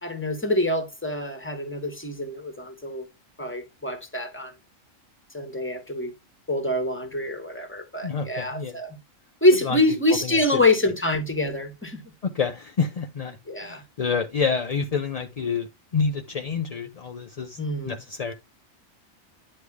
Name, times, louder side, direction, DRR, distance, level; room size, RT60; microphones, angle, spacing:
voice 1, 0.0-3.1 3.4-4.5 5.3-6.1 6.5-9.0 9.4-12.0 13.5-13.8 17.6-17.9, left 1 dB, 10° left, 1.2 m, -25 dB
voice 2, 8.0-8.8 9.6-9.8 10.1-10.4 12.2-18.3, left 5 dB, 50° left, 0.5 m, -28 dB
9.6 x 3.4 x 4.7 m
omnidirectional pair, 1.3 m